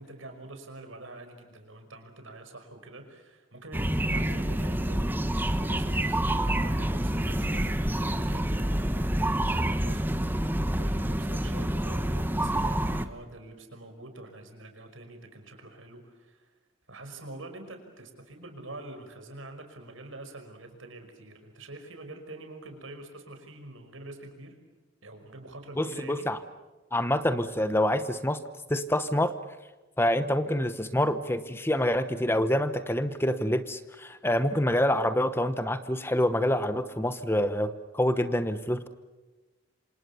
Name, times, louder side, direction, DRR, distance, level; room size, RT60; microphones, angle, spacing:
voice 1, 0.0-16.5 16.9-24.6 25.0-26.3, right 2 dB, 75° right, 6 dB, 5.5 m, -46 dB
sound 1, 3.7-13.1, right 1 dB, 10° right, 1.1 m, -27 dB
voice 2, 25.8-26.4 26.9-28.4 28.7-29.3 30.0-38.9, left 1 dB, 10° left, 11 dB, 1.0 m, -26 dB
27.0 x 27.0 x 7.0 m, 1.2 s
head